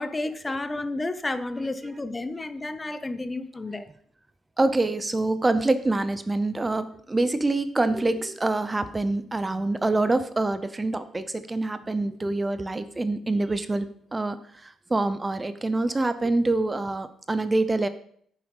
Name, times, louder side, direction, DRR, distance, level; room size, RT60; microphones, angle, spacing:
voice 1, 0.0-3.9, left 2 dB, 20° left, 12 dB, 0.8 m, -31 dB
voice 2, 4.6-14.4 14.6-17.9, right 2 dB, 20° right, 12 dB, 0.7 m, -25 dB
9.5 x 7.4 x 5.5 m, 0.63 s
cardioid pair, 90°, 0 cm